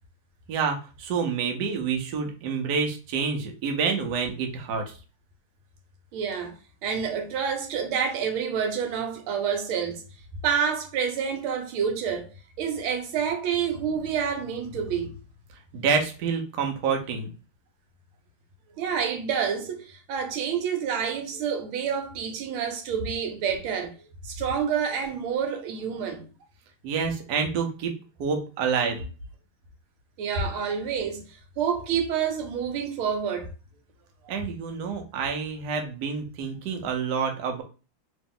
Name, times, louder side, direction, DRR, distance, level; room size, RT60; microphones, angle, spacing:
voice 1, 0.5-4.8 15.7-17.3 26.8-27.9 28.2-29.0 34.3-37.6, right 5 dB, 65° right, 1.2 m, -28 dB
voice 2, 6.1-10.0 10.4-12.3 12.6-15.1 18.8-23.9 24.2-26.3 28.8-29.0 30.2-33.5, right 7 dB, 85° right, 1.6 m, -28 dB
3.1 x 3.0 x 3.6 m
omnidirectional pair, 2.2 m